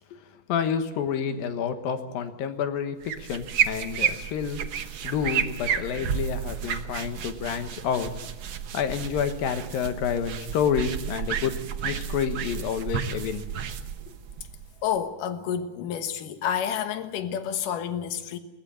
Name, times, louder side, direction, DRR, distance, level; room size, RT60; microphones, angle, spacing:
voice 1, 0.5-4.6 5.0-8.1 8.7-11.6 11.8-13.4, left 7 dB, 90° left, 3.1 m, -29 dB
sound 1, 3.0-15.0, right 7 dB, 90° right, 1.0 m, -31 dB
voice 2, 14.8-18.4, left 8 dB, 75° left, 2.8 m, -29 dB
20.5 x 18.0 x 8.8 m
omnidirectional pair, 3.9 m